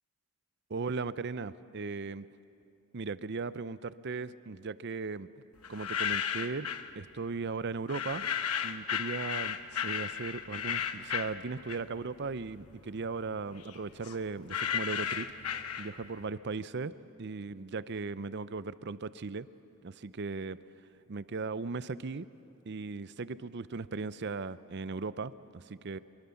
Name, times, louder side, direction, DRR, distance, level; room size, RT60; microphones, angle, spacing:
voice 1, 0.7-2.2 2.9-5.3 5.7-6.7 7.0-8.3 8.6-15.3 15.8-16.9 17.2-19.5 19.8-20.6 21.1-22.3 22.7-26.0, right 4 dB, 50° right, 15 dB, 0.6 m, -37 dB
sound 1, 5.6-6.9 7.9-12.1 12.5-16.2, left 8 dB, 85° left, 1.1 m, -34 dB
24.5 x 23.0 x 7.0 m, 2.6 s
head